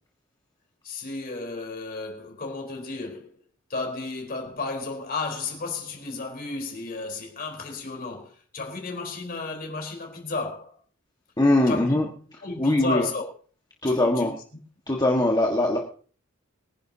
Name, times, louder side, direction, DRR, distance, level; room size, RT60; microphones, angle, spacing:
voice 1, 0.8-3.4 3.7-10.8 11.7-11.9 12.4-13.4 13.8-14.3, left 3 dB, 45° left, 4.1 m, -33 dB
voice 2, 11.4-12.1 12.6-13.0 13.8-14.3 14.9-15.8, left 1 dB, 20° left, 1.6 m, -21 dB
23.5 x 10.5 x 2.8 m
head